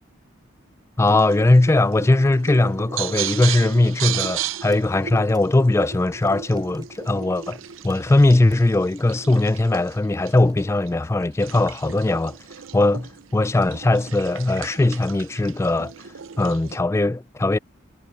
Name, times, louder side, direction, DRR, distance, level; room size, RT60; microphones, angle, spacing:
voice 1, 1.0-7.6 7.8-12.3 12.7-15.9 16.4-17.6, left 2 dB, 15° left, 0.3 m, -19 dB
sound 1, 1.0-16.8, right 10 dB, 85° right, 0.7 m, -35 dB
sound 2, 3.6-12.7, right 5 dB, 20° right, 6.0 m, -60 dB
head